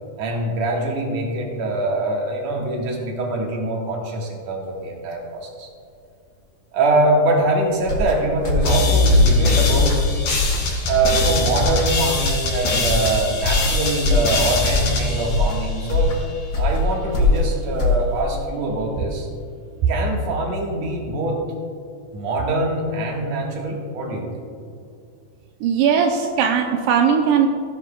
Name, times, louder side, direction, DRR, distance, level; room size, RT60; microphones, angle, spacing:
voice 1, 0.2-5.7 6.7-10.0 10.8-16.1 16.5-19.3 19.9-21.4 22.1-24.3, right 2 dB, 60° right, -1 dB, 2.6 m, -23 dB
sound 1, 7.8-18.4, left 2 dB, 45° left, 1.3 m, -23 dB
sound 2, 8.7-16.2, left 3 dB, 85° left, 3.7 m, -21 dB
voice 2, 25.6-27.5, right 7 dB, 85° right, 2 dB, 2.2 m, -18 dB
16.0 x 12.0 x 2.3 m, 2.3 s
omnidirectional pair, 3.7 m